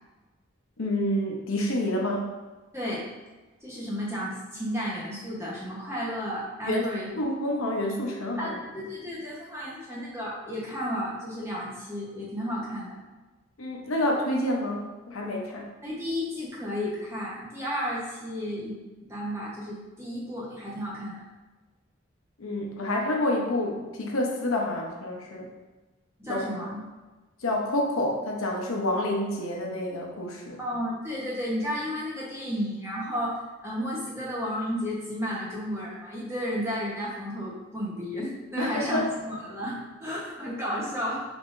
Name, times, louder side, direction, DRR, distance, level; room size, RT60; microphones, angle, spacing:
voice 1, 0.8-2.3 6.6-6.8 7.2-8.6 13.6-15.7 22.4-25.5 26.3-26.5 27.4-30.6 38.6-39.1, left 1 dB, 90° left, 0 dB, 0.8 m, -28 dB
voice 2, 2.7-3.0 3.6-7.1 8.4-13.0 15.8-18.8 19.1-21.2 26.2-26.8 30.6-41.2, equal, 15° right, -6 dB, 1.1 m, -32 dB
5.4 x 3.4 x 2.6 m, 1.2 s
head